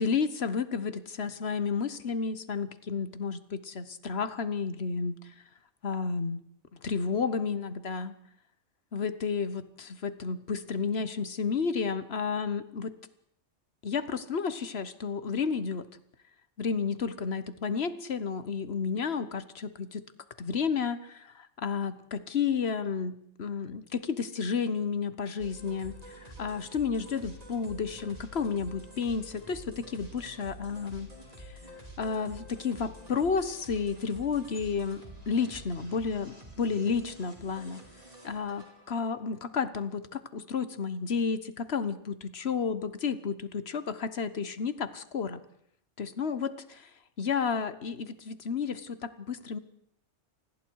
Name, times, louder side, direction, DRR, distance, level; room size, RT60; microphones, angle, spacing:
voice 1, 0.0-5.2 5.8-6.4 6.8-8.1 8.9-12.9 13.8-15.9 16.6-20.0 20.4-31.1 31.4-31.6 32.0-37.8 38.2-45.4 46.0-46.9 47.2-49.6, left 5 dB, 60° left, 13 dB, 1.4 m, -31 dB
sound 1, 25.4-39.3, equal, 35° right, 4.6 m, -48 dB
27.5 x 20.5 x 4.7 m, 0.69 s
omnidirectional pair, 1.2 m